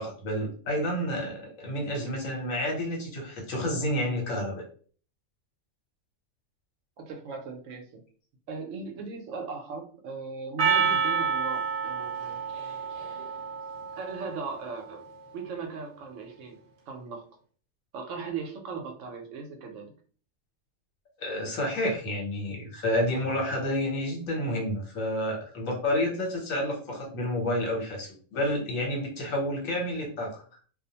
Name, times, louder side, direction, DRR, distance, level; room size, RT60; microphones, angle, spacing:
voice 1, 0.0-4.6 21.2-30.4, left 1 dB, 75° left, 0 dB, 1.2 m, -30 dB
voice 2, 7.0-8.0 8.5-12.4 14.0-15.0 15.3-16.6 16.9-17.2 17.9-19.9, right 4 dB, 70° right, 2 dB, 0.9 m, -38 dB
Percussion, 10.6-15.1, right 6 dB, 85° right, 0.4 m, -29 dB
2.5 x 2.0 x 2.7 m, 0.43 s
omnidirectional pair, 1.4 m